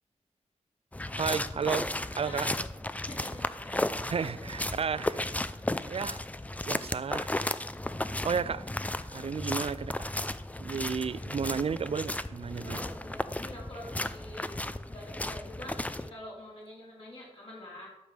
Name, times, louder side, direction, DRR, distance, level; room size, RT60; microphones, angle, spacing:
sound 1, 0.9-16.1, left 1 dB, 10° left, 0.5 m, -34 dB
voice 1, 1.1-1.9 2.2-2.5 4.1-5.4 5.8-6.2 6.7-7.3 8.2-8.7 9.1-10.0 10.6-12.8, right 6 dB, 55° right, 0.4 m, -32 dB
voice 2, 2.2-2.6 3.1-4.6 12.6-17.9, left 1 dB, 50° left, 4.1 m, -46 dB
12.5 x 5.2 x 6.7 m
wide cardioid pair, 80°, 12 cm